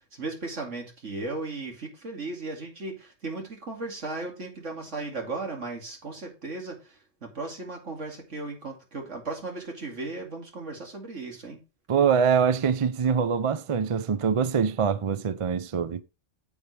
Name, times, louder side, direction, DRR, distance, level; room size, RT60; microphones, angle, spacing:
voice 1, 0.1-11.6, right 3 dB, 75° right, 2.7 m, -36 dB
voice 2, 11.9-16.0, right 6 dB, 45° right, 0.4 m, -24 dB
9.4 x 7.3 x 3.3 m
omnidirectional pair, 1.3 m